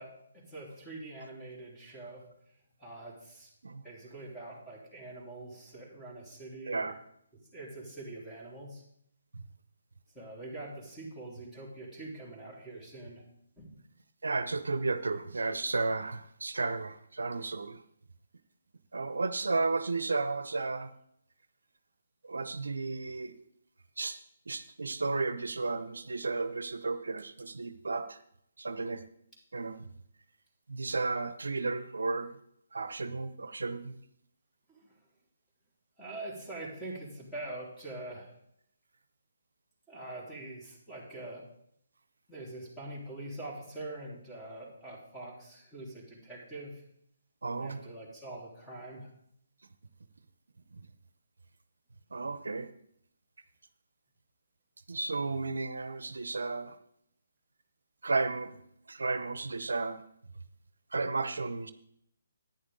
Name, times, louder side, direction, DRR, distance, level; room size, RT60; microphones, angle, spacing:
voice 1, 0.0-2.2 2.8-3.5 3.8-7.0 7.5-8.8 10.1-13.3 13.6-13.8 34.7-34.9 36.0-38.3 39.9-41.5 42.3-46.8 47.5-49.1, right 2 dB, 5° left, -5 dB, 3.4 m, -44 dB
voice 2, 14.2-17.8 18.9-20.9 22.3-23.3 24.0-24.2 24.5-28.2 28.6-29.0 29.5-29.8 30.7-32.3 32.7-34.0 47.4-47.8 52.1-52.7 54.9-56.8 58.0-58.5 58.9-60.0 60.9-61.7, right 3 dB, 80° right, 12 dB, 0.7 m, -33 dB
11.0 x 9.5 x 3.7 m, 0.71 s
figure-of-eight pair, 145°, 0 cm